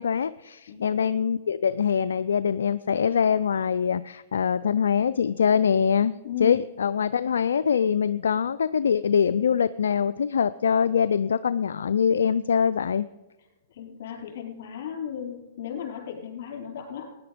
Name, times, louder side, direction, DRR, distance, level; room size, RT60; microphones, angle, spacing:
voice 1, 0.0-6.1 6.4-13.1, left 7 dB, 85° left, 13 dB, 0.4 m, -23 dB
voice 2, 6.2-6.6 13.7-17.1, left 9 dB, 65° left, 0 dB, 4.1 m, -35 dB
16.0 x 9.9 x 5.1 m, 1.1 s
hypercardioid pair, 130°, 0 cm